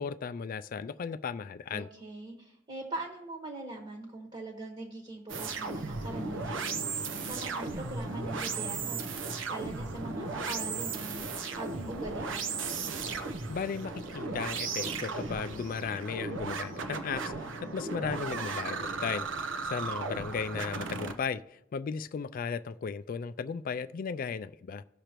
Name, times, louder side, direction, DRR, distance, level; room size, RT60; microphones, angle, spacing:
voice 1, 0.0-1.9 13.5-24.8, left 6 dB, 45° left, 0.3 m, -36 dB
voice 2, 1.7-6.6 7.2-9.0 9.5-11.2 11.5-12.6, right 2 dB, 25° right, 1.4 m, -42 dB
sound 1, 5.3-21.1, right 4 dB, 65° right, 0.8 m, -36 dB
17.5 x 6.6 x 3.0 m
head